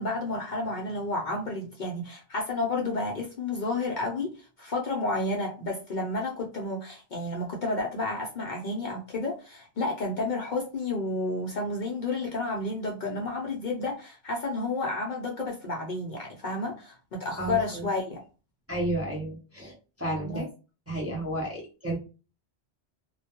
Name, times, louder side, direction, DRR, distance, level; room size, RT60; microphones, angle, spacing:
voice 1, 0.0-18.2 20.2-20.5, left 2 dB, 55° left, 0 dB, 0.6 m, -31 dB
voice 2, 17.4-17.9 18.7-20.4 20.9-22.0, right 1 dB, 20° right, -4 dB, 0.5 m, -32 dB
2.2 x 2.1 x 2.8 m, 0.33 s
omnidirectional pair, 1.1 m